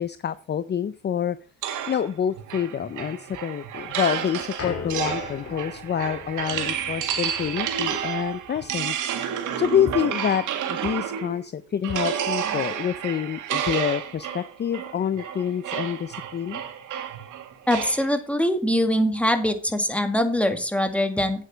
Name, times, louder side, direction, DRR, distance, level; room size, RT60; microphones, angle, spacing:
voice 1, 0.0-1.4 1.9-9.0 9.6-16.6, left 8 dB, 35° left, 14 dB, 0.6 m, -27 dB
sound 1, 1.6-11.4 11.8-18.1, right 9 dB, 80° right, 1.9 m, -30 dB
sound 2, 3.8-8.8, left 4 dB, 50° left, 4.3 m, -39 dB
voice 2, 17.7-21.4, equal, 5° left, 7 dB, 2.0 m, -23 dB
9.0 x 8.3 x 5.1 m, 0.41 s
cardioid pair, 90°, 30 cm